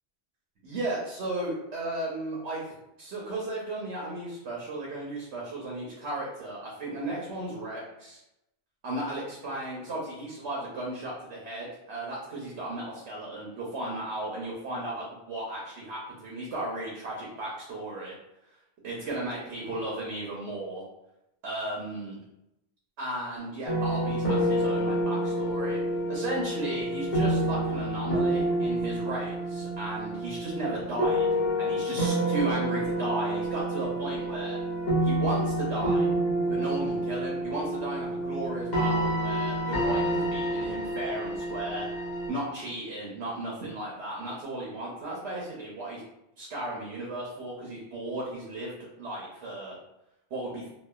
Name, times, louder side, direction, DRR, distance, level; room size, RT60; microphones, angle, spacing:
voice 1, 0.6-8.2 8.8-18.1 18.8-20.8 21.4-22.2 23.0-25.8 26.1-31.3 31.6-34.6 35.0-36.1 36.5-41.9 42.3-46.0 46.4-49.8 50.3-50.7, right 1 dB, 85° right, -4 dB, 0.9 m, -35 dB
sound 1, 23.7-42.3, right 1 dB, 45° left, 0.9 m, -28 dB
2.9 x 2.1 x 2.3 m, 0.86 s
omnidirectional pair, 1.1 m